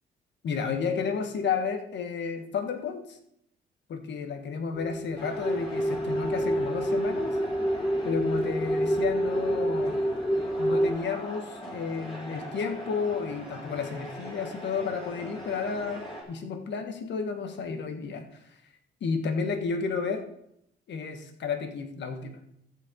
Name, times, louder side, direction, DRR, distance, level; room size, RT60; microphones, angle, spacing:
voice 1, 0.4-3.2 3.9-7.4 8.0-10.0 10.6-18.3 19.0-20.3 20.9-22.4, left 5 dB, 65° left, 6 dB, 1.5 m, -32 dB
sound 1, 4.7-11.0, right 1 dB, 10° left, 0.5 m, -28 dB
sound 2, 5.2-16.2, equal, 25° left, 4.4 m, -41 dB
13.5 x 8.2 x 3.8 m, 0.74 s
cardioid pair, 90°, 20 cm